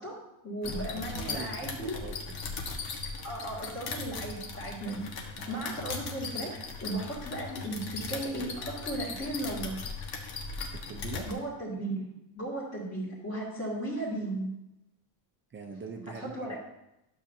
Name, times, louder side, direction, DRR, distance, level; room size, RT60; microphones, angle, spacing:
voice 1, 0.0-2.0 3.2-5.1 5.4-9.8 11.3-12.1 12.3-14.5 16.1-16.6, right 1 dB, 30° left, -10 dB, 2.1 m, -36 dB
sound 1, 0.6-11.3, left 4 dB, 60° left, 1.3 m, -38 dB
voice 2, 0.6-2.4 5.4-5.7 10.7-11.3 15.5-16.6, right 4 dB, 25° right, 3 dB, 0.6 m, -43 dB
11.5 x 7.1 x 2.7 m, 0.89 s
cardioid pair, 175°, 45 cm